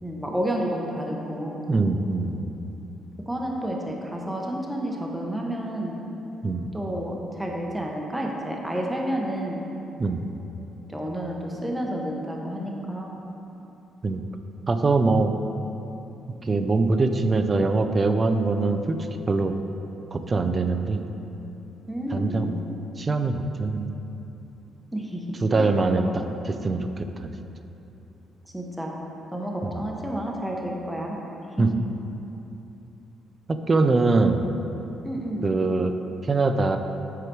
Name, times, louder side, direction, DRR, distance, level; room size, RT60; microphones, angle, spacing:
voice 1, 0.0-1.7 3.3-6.0 6.7-9.6 10.9-13.2 15.2-15.4 21.9-22.6 24.9-25.2 25.5-25.7 26.0-26.1 26.7-26.9 28.5-29.0 29.3-31.2 31.6-31.7 35.0-35.5, equal, 5° right, -1 dB, 0.8 m, -30 dB
voice 2, 1.7-2.4 6.4-6.7 10.0-10.3 14.0-14.2 14.7-15.3 16.4-19.6 20.1-21.0 22.1-22.5 23.0-23.9 25.4-26.0 26.5-27.3 29.6-29.8 31.6-31.7 33.5-34.5 35.4-35.9 36.2-36.8, right 3 dB, 25° right, 7 dB, 0.4 m, -23 dB
7.7 x 4.8 x 4.6 m, 3.0 s
cardioid pair, 150°, 0 cm